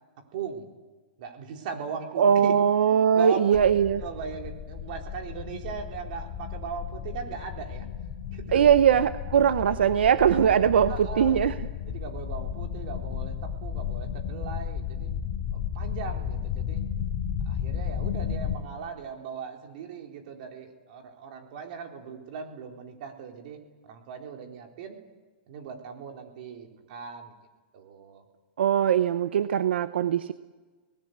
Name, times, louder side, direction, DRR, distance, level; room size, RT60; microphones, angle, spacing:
voice 1, 0.3-0.7 1.2-2.6 2.9-3.6 4.0-7.9 8.3-8.7 9.7-9.8 10.9-11.4 11.9-15.1 15.5-16.8 17.5-25.0 25.5-27.3 27.7-28.2, right 6 dB, 55° right, 3 dB, 4.1 m, -38 dB
voice 2, 2.2-4.0 8.5-11.5 28.6-30.3, right 8 dB, 85° right, 12 dB, 0.9 m, -21 dB
sound 1, 3.5-18.6, left 8 dB, 35° left, 2.6 m, -33 dB
26.5 x 19.5 x 8.1 m, 1.3 s
hypercardioid pair, 150°, 6 cm